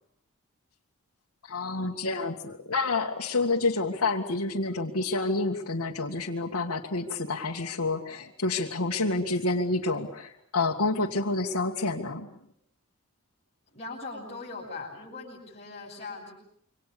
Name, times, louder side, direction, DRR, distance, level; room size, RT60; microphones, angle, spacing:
voice 1, 1.4-12.3, left 3 dB, 75° left, -1 dB, 2.0 m, -28 dB
voice 2, 13.7-16.3, left 3 dB, 30° left, -6 dB, 8.0 m, -40 dB
27.0 x 25.0 x 6.9 m, 0.67 s
head